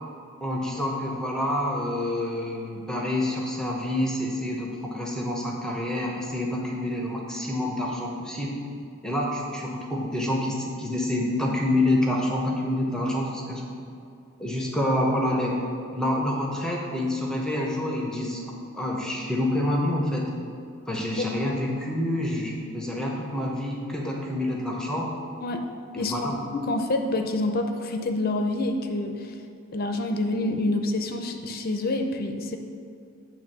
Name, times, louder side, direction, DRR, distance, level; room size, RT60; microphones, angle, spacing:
voice 1, 0.4-8.6 9.0-13.6 14.4-15.7 15.9-20.3 20.9-25.1 26.0-26.4, left 1 dB, 5° left, -2 dB, 0.8 m, -27 dB
voice 2, 25.9-29.3 29.7-32.6, left 2 dB, 45° left, 5 dB, 0.5 m, -27 dB
8.8 x 3.2 x 6.6 m, 2.5 s
head